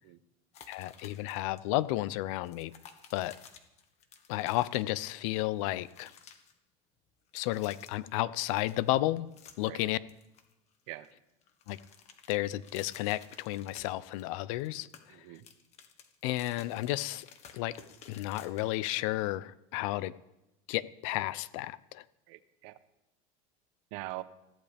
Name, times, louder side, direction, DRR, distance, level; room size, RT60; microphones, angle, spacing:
sound 1, 0.5-1.6 1.8-2.0 2.4-5.2 5.5-6.5 7.3-8.2 8.4-9.8 10.1-11.1 11.4-14.3 14.6-18.9, left 7 dB, 40° left, 1.4 m, -55 dB
voice 1, 0.7-2.7 3.1-3.4 4.3-6.1 7.3-9.3 9.6-10.0 11.7-11.8 12.3-14.9 16.2-17.3 17.5-17.8 18.1-20.1 20.7-22.0, left 16 dB, 70° left, 18 dB, 0.6 m, -32 dB
voice 2, 15.1-15.5 22.3-22.8 23.9-24.2, right 18 dB, 65° right, 11 dB, 0.9 m, -43 dB
21.0 x 14.5 x 3.5 m, 0.91 s
supercardioid pair, 140°, 17 cm